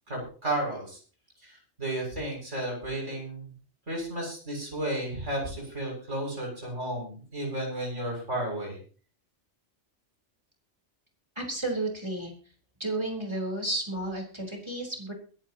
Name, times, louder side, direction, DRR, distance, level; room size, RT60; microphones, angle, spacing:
voice 1, 0.1-1.0 1.4-3.5 3.9-8.8, right 1 dB, 75° right, -1 dB, 7.2 m, -33 dB
voice 2, 11.4-12.3 12.8-15.1, right 2 dB, 20° right, 1 dB, 4.2 m, -32 dB
23.0 x 10.5 x 3.0 m, 0.40 s
omnidirectional pair, 1.2 m